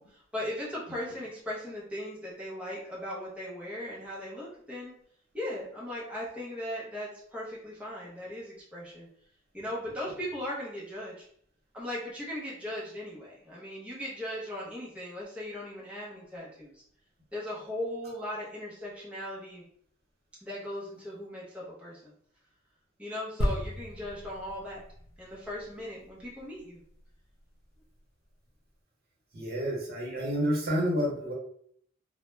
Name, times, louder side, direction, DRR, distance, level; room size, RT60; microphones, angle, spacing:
voice 1, 0.0-4.9 5.3-9.1 9.5-11.2 11.7-16.8 17.3-19.6 20.4-22.1 23.0-24.8 25.2-26.8, left 1 dB, 5° right, -7 dB, 0.6 m, -38 dB
sound 1, 23.4-27.0 27.6-27.7, equal, 75° left, 0.6 m, -35 dB
voice 2, 29.3-31.3, equal, 55° right, -2 dB, 0.8 m, -29 dB
2.2 x 2.0 x 3.1 m, 0.62 s
head